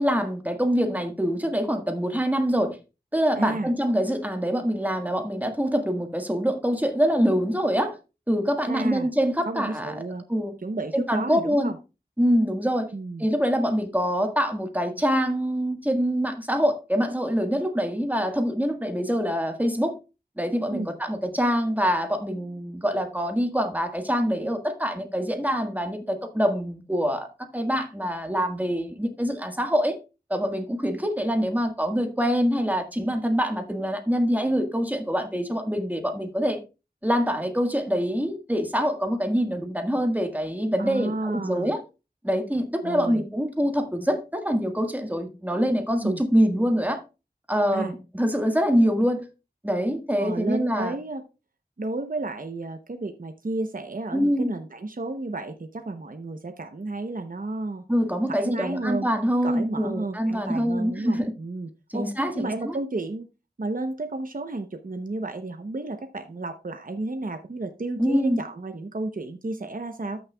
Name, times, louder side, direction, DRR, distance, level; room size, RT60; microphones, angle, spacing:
voice 1, 0.0-2.8 3.1-8.0 8.3-9.9 10.3-10.5 10.9-11.7 12.2-12.9 13.2-19.9 20.4-29.9 30.3-36.6 37.0-41.8 42.2-47.0 47.5-49.3 49.6-50.9 54.1-54.5 57.9-61.3 61.9-62.8 68.0-68.4, equal, 10° right, 1.6 m, -25 dB
voice 2, 3.4-3.7 8.7-9.1 9.4-10.2 10.6-11.8 12.9-13.2 20.7-20.9 40.8-41.7 42.8-43.2 46.0-46.2 47.7-47.9 50.2-51.2 51.8-57.8 58.3-59.1 59.4-62.1 62.3-63.3 63.6-70.2, right 2 dB, 55° right, 0.8 m, -32 dB
13.5 x 6.4 x 2.3 m
wide cardioid pair, 50°, 16 cm